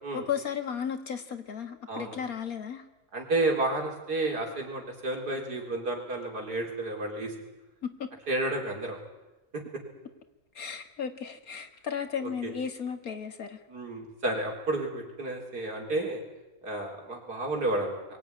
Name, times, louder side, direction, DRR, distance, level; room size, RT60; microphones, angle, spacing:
voice 1, 0.1-2.8 7.8-8.1 10.6-13.6, left 7 dB, 65° left, 7 dB, 2.2 m, -34 dB
voice 2, 3.1-7.3 8.3-9.0 12.2-12.5 13.7-16.2 16.6-18.0, right 2 dB, 80° right, 1 dB, 4.7 m, -31 dB
23.0 x 16.0 x 9.7 m, 1.0 s
omnidirectional pair, 1.7 m